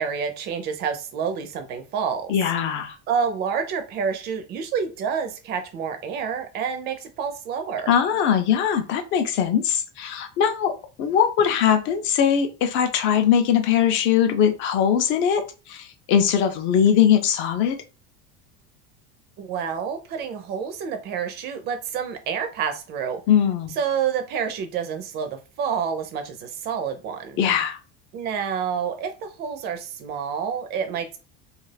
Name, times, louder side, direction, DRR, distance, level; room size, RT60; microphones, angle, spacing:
voice 1, 0.0-2.3 3.1-7.9 19.4-23.2 23.8-27.4 28.1-31.2, right 7 dB, 35° right, 7 dB, 0.4 m, -28 dB
voice 2, 2.3-3.0 7.9-10.7 11.0-17.8 23.3-23.8 27.4-27.8, left 8 dB, 40° left, 7 dB, 0.5 m, -21 dB
2.4 x 2.3 x 3.2 m, 0.31 s
cardioid pair, 170°, 30 cm